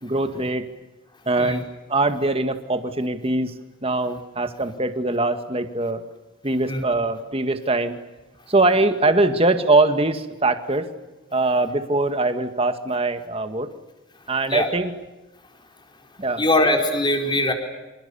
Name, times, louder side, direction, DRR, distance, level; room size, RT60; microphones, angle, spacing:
voice 1, 0.0-0.7 1.3-1.6 1.9-3.5 3.8-6.0 6.4-8.0 8.5-10.9 11.3-13.7 14.3-14.9 16.2-16.4, right 2 dB, 25° right, 8 dB, 1.9 m, -22 dB
voice 2, 16.4-17.5, left 1 dB, 20° left, 3 dB, 4.6 m, -21 dB
28.0 x 27.5 x 7.1 m, 1.1 s
head